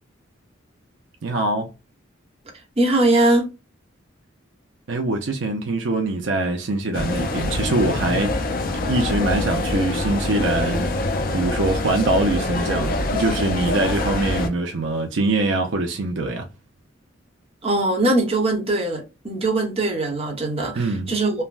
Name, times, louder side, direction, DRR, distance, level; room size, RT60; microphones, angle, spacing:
voice 1, 1.2-1.7 4.9-8.4 8.9-10.9 11.3-16.5 20.8-21.1, right 2 dB, 70° right, 0.5 m, -23 dB
voice 2, 2.8-3.5 17.6-21.4, right 2 dB, 30° right, 0.9 m, -21 dB
sound 1, 6.9-14.5, left 2 dB, 45° left, 0.5 m, -25 dB
3.2 x 2.1 x 2.3 m
head